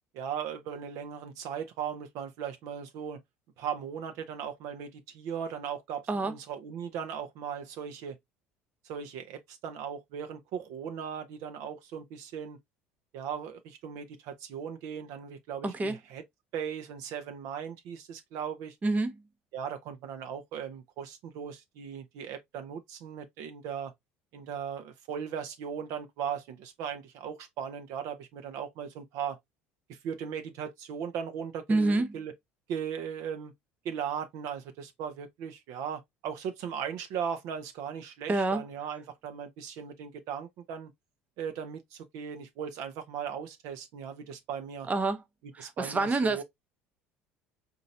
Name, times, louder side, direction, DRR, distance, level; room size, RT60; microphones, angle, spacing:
voice 1, 0.1-3.2 3.6-8.2 8.8-12.6 13.1-16.2 16.5-18.8 19.5-23.9 24.3-29.4 29.9-32.3 32.7-33.5 33.8-40.9 41.4-44.9 45.6-46.4, right 8 dB, 65° right, 0.7 m, -38 dB
voice 2, 15.6-16.0 18.8-19.2 31.7-32.2 38.3-38.6 44.9-45.2 45.5-46.4, right 2 dB, 25° right, 0.7 m, -27 dB
3.9 x 2.7 x 2.6 m
hypercardioid pair, 70°, 6 cm